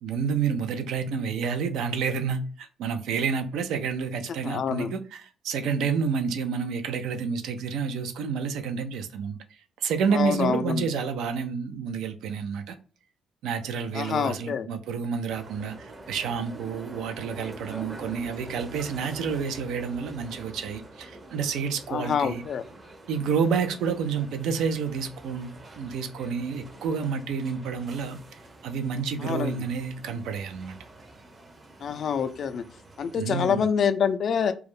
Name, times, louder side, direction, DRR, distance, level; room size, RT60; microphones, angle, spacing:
voice 1, 0.0-9.4 9.8-12.8 13.4-22.4 23.1-28.2 28.6-30.7 33.2-33.7, right 6 dB, 85° right, 0.4 m, -29 dB
voice 2, 4.4-4.9 10.1-10.9 13.9-14.7 21.9-22.6 29.2-29.5 31.8-32.6 33.0-34.5, left 7 dB, 60° left, 0.3 m, -26 dB
sound 1, 15.3-33.2, right 2 dB, 35° right, 0.6 m, -45 dB
2.3 x 2.0 x 3.0 m
cardioid pair, 90°, 0 cm